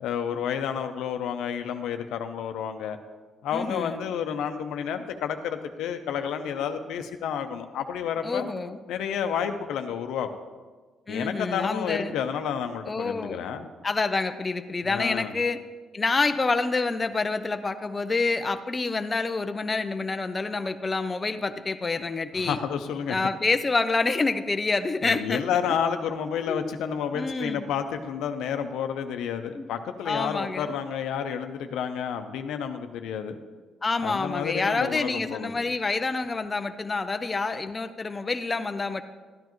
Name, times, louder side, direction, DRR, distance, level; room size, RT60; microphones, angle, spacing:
voice 1, 0.0-3.0 3.4-8.5 8.9-10.4 11.1-13.7 14.8-15.3 22.3-23.2 25.0-33.4 34.0-35.5, left 8 dB, 85° left, 7 dB, 0.7 m, -30 dB
voice 2, 3.5-4.0 8.2-8.8 11.1-12.2 12.9-13.4 13.8-15.6 15.9-22.6 23.1-25.5 26.5-26.7 27.1-27.7 29.5-29.7 30.1-30.7 33.8-39.0, left 3 dB, 25° left, 8 dB, 0.5 m, -27 dB
12.5 x 10.5 x 3.1 m, 1.4 s
cardioid pair, 90°, 0 cm